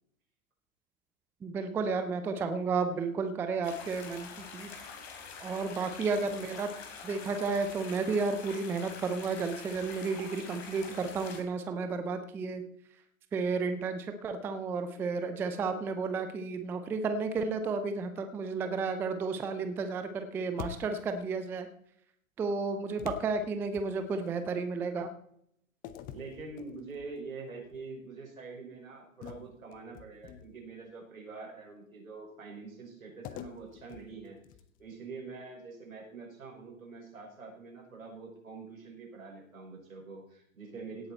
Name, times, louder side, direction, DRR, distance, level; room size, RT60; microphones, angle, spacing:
voice 1, 1.4-4.7 5.4-6.7 7.0-12.6 13.3-21.7 22.4-25.1, right 4 dB, 5° right, 9 dB, 0.4 m, -32 dB
sound 1, 3.6-11.4, left 5 dB, 50° left, 4.2 m, -46 dB
sound 2, 20.6-21.2 23.0-24.3 25.8-27.2 27.6-27.9 29.2-30.7 33.2-34.9, left 10 dB, 20° left, 0.7 m, -46 dB
voice 2, 26.1-34.4 34.8-41.1, right 4 dB, 80° right, 0 dB, 5.6 m, -45 dB
17.0 x 8.6 x 4.3 m, 0.71 s
figure-of-eight pair, 115°, 41 cm